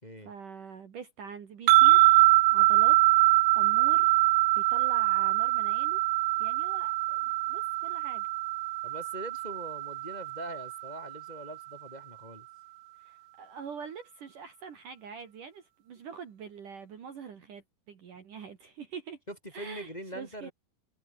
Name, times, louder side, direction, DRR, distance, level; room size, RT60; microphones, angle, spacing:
voice 1, 0.2-2.2 2.5-3.0 3.6-4.1 4.5-6.0 6.4-7.2 7.5-8.3 13.0-19.2 19.5-20.5, right 6 dB, 55° right, 3.6 m, -44 dB
sound 1, 1.7-11.0, right 20 dB, 90° right, 2.8 m, -24 dB
voice 2, 8.8-12.5 19.3-20.5, equal, 10° left, 5.0 m, -42 dB
omnidirectional pair, 4.9 m